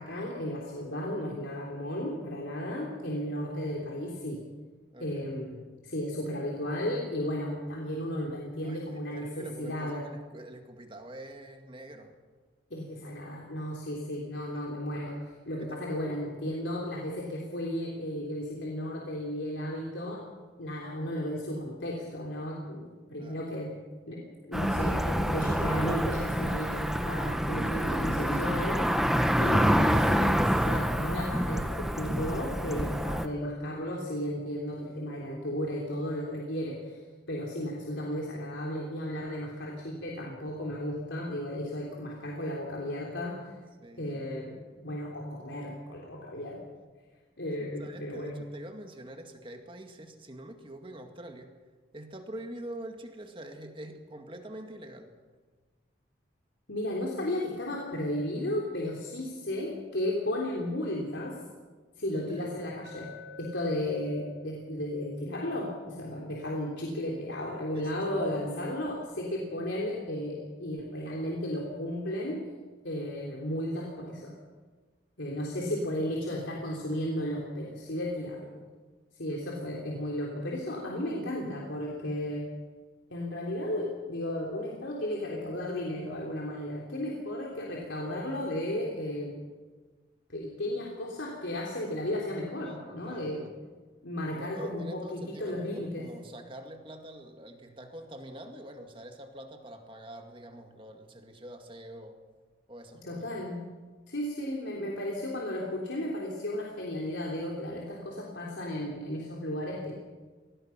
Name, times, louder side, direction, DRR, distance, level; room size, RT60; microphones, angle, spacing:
voice 1, 0.0-4.4 5.0-10.0 12.7-20.2 20.6-23.7 24.1-29.1 29.4-37.0 37.3-43.5 44.0-44.6 44.8-46.6 47.4-48.4 56.7-61.3 62.0-63.1 63.4-72.4 72.8-74.3 75.2-78.6 79.1-82.4 83.1-89.4 90.3-93.4 94.0-96.0 103.0-103.6 104.1-109.9, left 1 dB, 80° left, -2 dB, 3.6 m, -34 dB
voice 2, 4.9-5.3 8.6-12.2 14.5-14.7 16.1-16.2 23.2-23.5 43.8-44.3 47.6-51.6 51.9-55.2 62.2-62.6 67.7-68.3 92.6-93.5 94.3-102.2 102.7-103.2, right 1 dB, 25° right, 4 dB, 2.1 m, -45 dB
Cricket / Motor vehicle (road), 24.5-33.3, equal, ahead, 0.8 m, -27 dB
Glass, 62.8-67.0, left 2 dB, 75° right, 7.2 m, -52 dB
25.5 x 19.0 x 6.0 m, 1.4 s
head